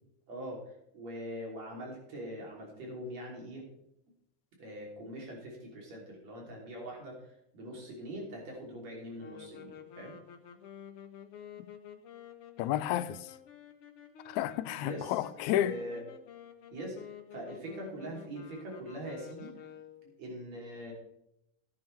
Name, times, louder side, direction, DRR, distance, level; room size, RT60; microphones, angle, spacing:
voice 1, 0.3-3.6 4.6-10.1 14.8-15.2 15.6-16.0 16.7-17.0 17.3-19.7 20.0-20.9, right 1 dB, 65° right, 4.5 m, -43 dB
sound 1, 9.2-20.1, left 8 dB, 60° left, 1.7 m, -51 dB
voice 2, 12.6-13.2 14.3-15.7, left 12 dB, 85° left, 1.9 m, -31 dB
14.5 x 10.5 x 3.4 m
omnidirectional pair, 3.4 m